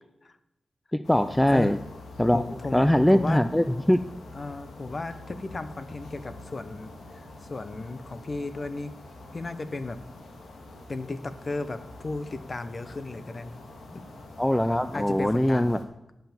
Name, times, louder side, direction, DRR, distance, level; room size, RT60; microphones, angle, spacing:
voice 1, 0.9-1.8 2.2-2.4 2.7-4.0 14.4-15.8, left 1 dB, 5° left, 11 dB, 0.4 m, -22 dB
sound 1, 1.0-15.8, left 2 dB, 80° left, 1.7 m, -45 dB
voice 2, 2.3-3.4 4.3-8.9 9.3-10.0 10.9-13.6 13.9-14.0 14.9-15.8, left 3 dB, 40° left, 11 dB, 0.8 m, -35 dB
11.0 x 5.8 x 7.1 m, 0.92 s
cardioid pair, 80°, 0 cm